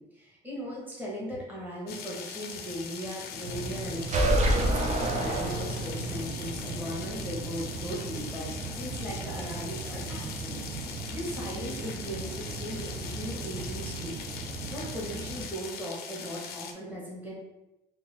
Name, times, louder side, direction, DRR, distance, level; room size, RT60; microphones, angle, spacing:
voice 1, 0.0-10.6 11.1-14.1 14.7-17.4, equal, 10° right, -6 dB, 1.3 m, -38 dB
sound 1, 1.9-16.7, left 6 dB, 65° left, 0.5 m, -41 dB
sound 2, 3.4-15.4, right 3 dB, 80° right, 0.7 m, -38 dB
sound 3, 4.1-6.1, right 1 dB, 45° right, 0.5 m, -26 dB
2.8 x 2.6 x 3.3 m, 0.95 s
cardioid pair, 110°, 17 cm